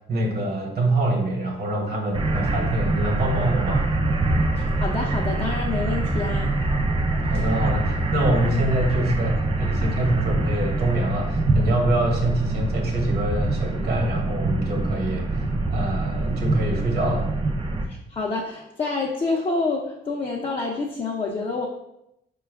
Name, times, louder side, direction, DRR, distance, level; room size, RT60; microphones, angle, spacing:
voice 1, 0.1-3.8 7.2-15.5 15.7-17.3, right 1 dB, 50° right, 1 dB, 1.1 m, -25 dB
sound 1, 2.1-17.8, right 2 dB, 25° right, 0.4 m, -24 dB
voice 2, 4.6-6.5 17.9-21.7, left 3 dB, 30° left, -3 dB, 0.5 m, -27 dB
4.5 x 2.3 x 3.4 m, 0.82 s
cardioid pair, 90°, 20 cm